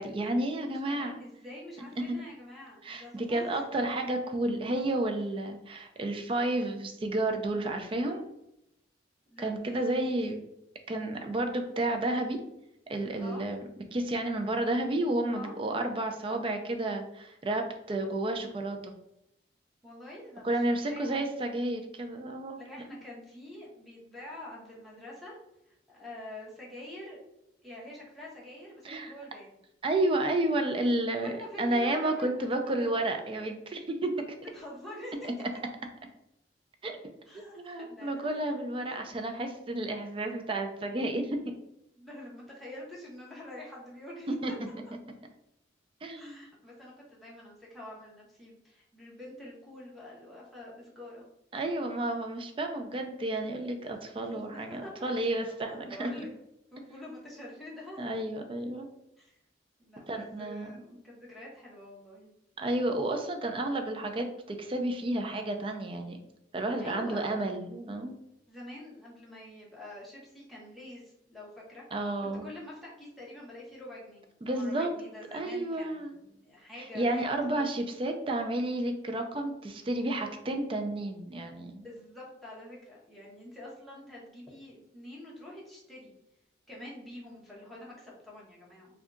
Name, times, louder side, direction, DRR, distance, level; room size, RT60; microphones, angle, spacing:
voice 1, 0.0-1.2 2.1-2.2 2.8-8.2 9.4-10.4 10.9-12.4 12.9-13.6 13.9-18.9 20.4-22.6 28.8-29.1 29.8-31.3 31.6-34.1 35.2-35.3 36.8-37.0 37.3-41.4 44.3-44.5 46.0-46.5 51.5-56.1 58.0-58.9 60.1-60.8 62.6-66.2 66.5-68.1 71.9-72.5 74.4-74.9 75.3-76.1 76.9-81.8, right 1 dB, 30° right, 5 dB, 0.4 m, -31 dB
voice 2, 0.7-3.7 4.9-5.0 9.3-10.3 13.2-13.4 15.3-15.6 19.8-21.2 22.6-25.4 25.9-27.2 27.6-29.6 31.2-32.9 34.4-35.1 37.3-38.5 42.0-44.6 46.2-51.2 54.2-56.3 56.7-58.0 59.2-59.4 59.8-62.3 66.8-67.3 68.5-71.8 72.2-74.2 74.5-77.6 81.8-86.1 86.7-89.0, left 1 dB, ahead, -6 dB, 0.9 m, -46 dB
2.6 x 2.3 x 3.6 m, 0.84 s
head